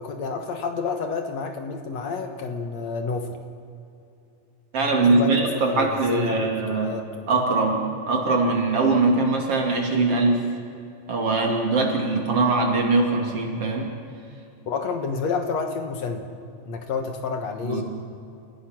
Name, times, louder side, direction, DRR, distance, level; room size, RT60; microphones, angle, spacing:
voice 1, 0.0-3.4 5.0-7.1 14.7-16.2 16.7-17.8, left 4 dB, 65° left, 5 dB, 2.4 m, -29 dB
voice 2, 4.7-6.9 7.3-10.4 11.1-13.9 17.6-17.8, right 3 dB, 50° right, 0 dB, 3.5 m, -22 dB
29.5 x 16.0 x 5.9 m, 2.6 s
omnidirectional pair, 3.5 m